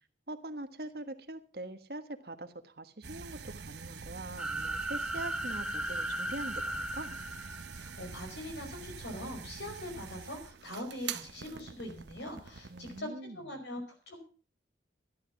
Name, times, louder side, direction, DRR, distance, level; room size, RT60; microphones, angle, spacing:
voice 1, 0.3-7.2 12.7-13.4, right 1 dB, 60° right, 9 dB, 1.4 m, -43 dB
sound 1, 3.0-13.0, right 6 dB, 75° right, 0.9 m, -45 dB
sound 2, 4.4-8.1, right 1 dB, 5° right, 0.8 m, -36 dB
voice 2, 7.7-14.3, left 1 dB, 85° left, 4 dB, 5.2 m, -42 dB
13.5 x 11.5 x 5.9 m, 0.40 s
head